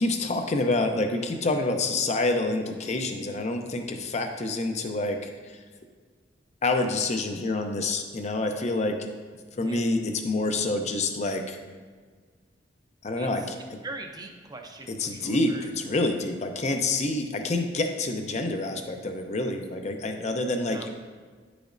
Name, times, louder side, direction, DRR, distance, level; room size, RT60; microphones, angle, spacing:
voice 1, 0.0-5.6 6.6-9.0 9.6-11.6 13.0-13.8 14.9-20.9, left 2 dB, 40° left, 5 dB, 0.6 m, -27 dB
voice 2, 13.2-13.5 13.8-15.7 20.7-20.9, right 2 dB, 20° right, 3 dB, 0.6 m, -41 dB
9.5 x 5.0 x 2.6 m, 1.5 s
head